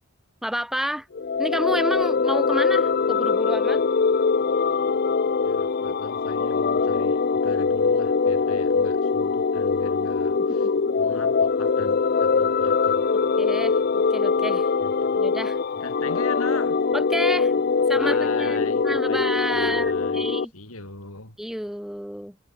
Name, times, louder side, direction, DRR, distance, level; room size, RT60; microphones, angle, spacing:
voice 1, 0.4-1.1 1.4-3.8 10.6-10.7 13.4-14.7 15.2-15.6 16.9-17.5 17.9-20.5 21.4-22.4, equal, ahead, 0.8 m, -30 dB
sound 1, 1.1-20.4, left 5 dB, 45° left, 0.5 m, -22 dB
voice 2, 5.4-10.7 11.0-13.1 14.8-15.2 15.8-16.8 18.0-20.3 20.5-21.4, left 3 dB, 70° left, 6.5 m, -39 dB
head